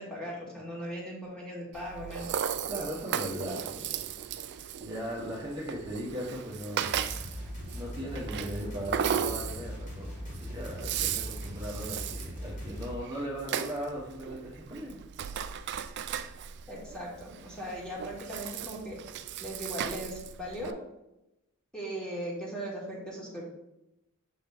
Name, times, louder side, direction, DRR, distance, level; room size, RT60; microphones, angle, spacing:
voice 1, 0.0-2.3 16.7-19.0 19.4-20.8 21.7-23.4, equal, 5° left, -5 dB, 1.7 m, -38 dB
Rattle (instrument), 1.7-20.7, right 8 dB, 50° right, 0.3 m, -36 dB
voice 2, 2.6-4.0 4.8-15.0, equal, 20° right, -6 dB, 1.1 m, -38 dB
sound 1, 6.8-13.0, equal, 35° left, 1.7 m, -40 dB
7.1 x 3.9 x 3.4 m, 0.88 s
head